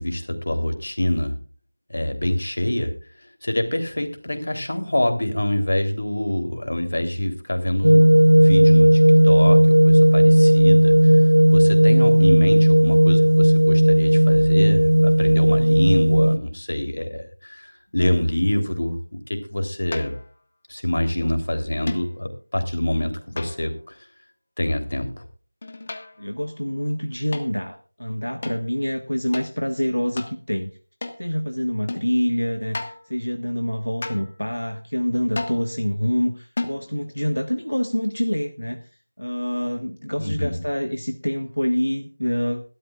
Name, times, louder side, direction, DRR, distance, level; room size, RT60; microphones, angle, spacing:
voice 1, 0.0-1.4 1.9-2.9 3.2-9.6 9.8-11.2 11.5-19.0 19.3-20.1 20.7-23.9 24.6-25.2 40.2-40.6, left 1 dB, 50° left, 6 dB, 3.3 m, -25 dB
sound 1, 7.8-16.4, right 1 dB, 70° right, 0.7 m, -14 dB
sound 2, 18.0-18.4 19.9-20.3 21.9-22.2 23.4-23.9 25.6-26.3 27.3-27.5 28.4-28.6 29.3-29.5 30.2-30.4 31.0-31.3 31.9-32.1 32.7-33.1 34.0-34.4 35.3-35.7 36.6-36.8, left 2 dB, 30° left, 1.5 m, -33 dB
voice 2, 21.0-21.4 26.2-30.7 31.2-38.9 39.2-42.6, equal, 80° left, 6 dB, 1.4 m, -26 dB
21.5 x 13.0 x 2.4 m, 0.38 s
figure-of-eight pair, 170°, 0 cm